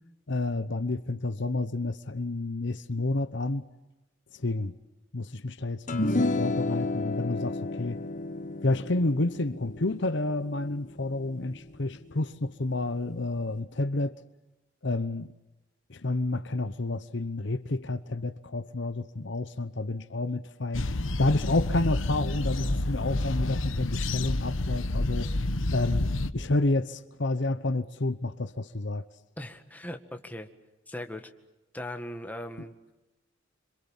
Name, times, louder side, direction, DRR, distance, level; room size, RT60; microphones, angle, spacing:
voice 1, 0.3-3.7 4.3-4.7 5.1-8.0 8.6-14.2 14.8-15.3 15.9-25.3 25.7-29.0, left 2 dB, 60° left, 1.0 m, -30 dB
sound 1, 5.9-12.4, left 2 dB, 40° left, 1.6 m, -32 dB
sound 2, 20.7-26.3, left 2 dB, 85° left, 1.2 m, -29 dB
voice 2, 29.4-30.5 30.9-31.3 31.7-32.7, left 1 dB, 10° left, 1.9 m, -39 dB
27.0 x 26.5 x 7.3 m
head